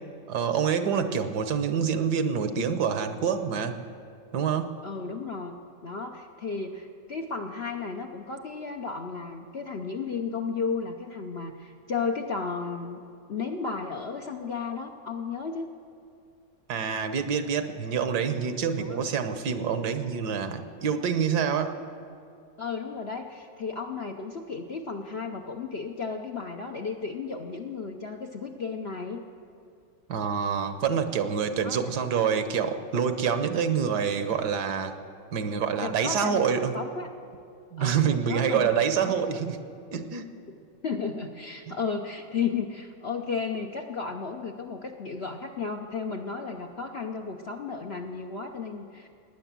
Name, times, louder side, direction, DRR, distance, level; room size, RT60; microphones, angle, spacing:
voice 1, 0.3-3.8 4.3-4.8 16.7-21.8 30.1-34.9 35.3-36.8 37.7-39.6 39.9-40.3 41.7-41.8, right 7 dB, 70° right, 9 dB, 1.4 m, -27 dB
voice 2, 0.8-1.2 4.8-5.6 5.8-13.0 13.3-15.7 18.8-19.0 22.6-29.2 31.6-31.9 35.8-37.1 37.8-38.7 39.0-39.1 40.8-49.1, left 5 dB, 50° left, 3 dB, 0.8 m, -34 dB
18.0 x 10.0 x 7.4 m, 2.5 s
omnidirectional pair, 1.9 m